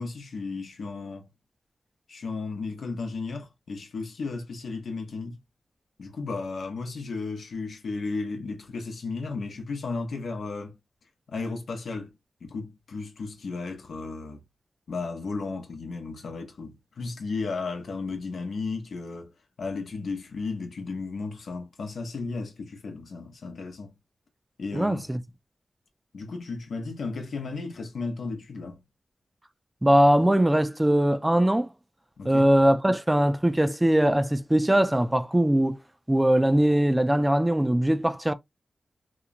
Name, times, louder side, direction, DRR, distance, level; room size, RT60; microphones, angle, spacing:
voice 1, 0.0-1.3 2.1-5.4 6.0-10.8 11.3-12.1 12.4-14.4 14.9-19.3 19.6-24.0 24.6-25.1 26.1-28.8 32.2-32.5, left 4 dB, 80° left, 0.7 m, -34 dB
voice 2, 24.7-25.2 29.8-31.7 32.2-35.8 36.1-38.3, right 1 dB, 15° right, 0.4 m, -21 dB
3.0 x 2.0 x 2.4 m
cardioid pair, 50°, 0 cm